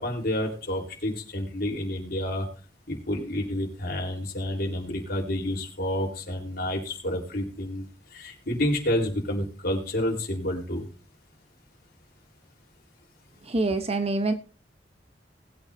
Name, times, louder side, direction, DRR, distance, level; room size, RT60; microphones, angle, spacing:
voice 1, 0.0-2.5 2.9-7.8 8.1-10.9, left 1 dB, 60° left, 1 dB, 3.9 m, -29 dB
voice 2, 13.4-14.3, right 2 dB, 35° right, 8 dB, 0.9 m, -25 dB
20.0 x 8.8 x 2.7 m, 0.36 s
head